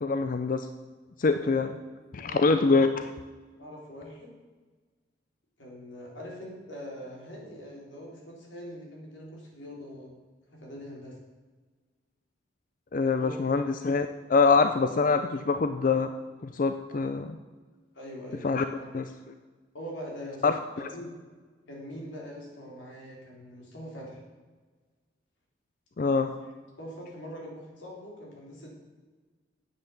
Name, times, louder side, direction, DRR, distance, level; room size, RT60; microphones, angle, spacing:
voice 1, 0.0-0.7 1.2-1.7 2.1-3.1 12.9-16.1 16.4-17.4 18.4-18.7 18.9-19.1 20.4-20.6 26.0-26.3, left 4 dB, 45° left, 9 dB, 0.5 m, -24 dB
voice 2, 1.4-1.7 2.2-2.8 3.6-4.3 5.6-10.2 10.5-11.2 13.2-13.3 17.9-18.9 19.7-20.4 20.8-21.1 21.7-24.2 26.8-28.7, equal, 90° left, -2 dB, 3.7 m, -43 dB
9.5 x 7.9 x 7.1 m, 1.4 s
head